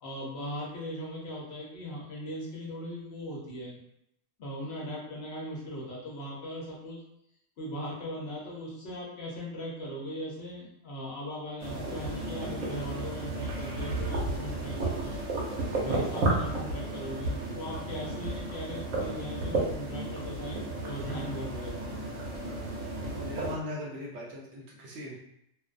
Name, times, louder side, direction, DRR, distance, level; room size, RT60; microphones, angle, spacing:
voice 1, 0.0-3.8 4.4-7.0 7.6-15.2 15.8-22.0, equal, 60° left, -5 dB, 0.9 m, -39 dB
sound 1, 11.6-23.5, right 2 dB, 90° right, 1.0 m, -33 dB
voice 2, 22.9-25.2, left 1 dB, 70° right, -3 dB, 0.9 m, -39 dB
2.5 x 2.1 x 2.4 m, 0.77 s
omnidirectional pair, 1.3 m